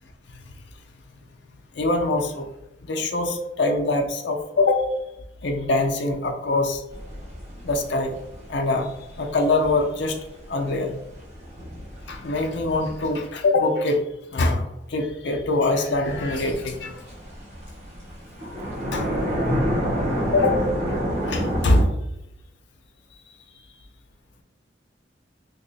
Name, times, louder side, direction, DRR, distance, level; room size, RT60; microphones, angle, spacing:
voice 1, 1.8-2.5 2.8-4.8 5.4-6.8 7.6-8.1 8.5-8.9 9.2-10.2 10.5-11.0 12.1-14.0 14.3-17.0 18.9-19.1 20.3-20.6 20.9-21.0 21.2-21.9, left 2 dB, 65° left, 4 dB, 0.5 m, -23 dB
sound 1, 6.9-13.2 16.0-21.8, equal, 35° right, 1.2 m, -29 dB
2.8 x 2.5 x 4.0 m, 0.86 s
head